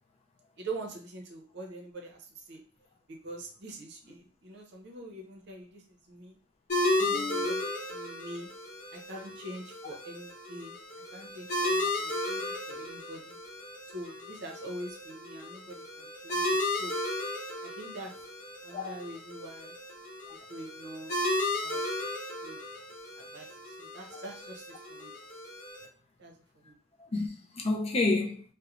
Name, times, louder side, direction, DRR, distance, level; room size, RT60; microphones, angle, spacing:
voice 1, 0.6-2.6 3.1-6.4 6.9-8.5 8.9-10.8 11.1-13.4 13.9-17.0 17.6-18.1 18.6-19.7 20.5-21.1 21.6-21.8 22.4-22.6 23.1-25.1 26.2-26.7, right 2 dB, 60° right, 0.6 m, -44 dB
sound 1, 6.7-25.8, left 1 dB, 45° left, 1.0 m, -34 dB
voice 2, 7.0-7.5 18.7-18.9 20.3-20.4 24.1-24.2 27.0-28.4, left 3 dB, 30° left, 0.4 m, -30 dB
3.0 x 2.1 x 2.5 m
head